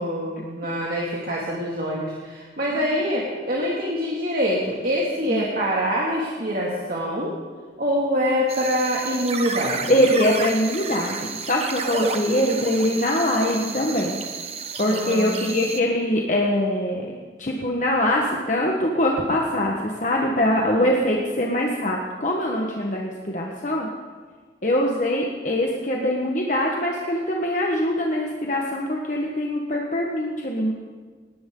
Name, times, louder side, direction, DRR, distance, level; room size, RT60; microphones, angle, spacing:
voice 1, 0.0-7.3 7.8-10.0 14.9-15.6 20.8-20.9, equal, 55° right, -4 dB, 2.4 m, -25 dB
sound 1, 8.5-15.8, right 4 dB, 35° right, 1.1 m, -32 dB
voice 2, 9.9-14.2 14.8-17.1 17.4-23.9 24.6-30.7, left 1 dB, 45° left, -1 dB, 1.4 m, -23 dB
19.0 x 18.5 x 3.9 m, 1.5 s
head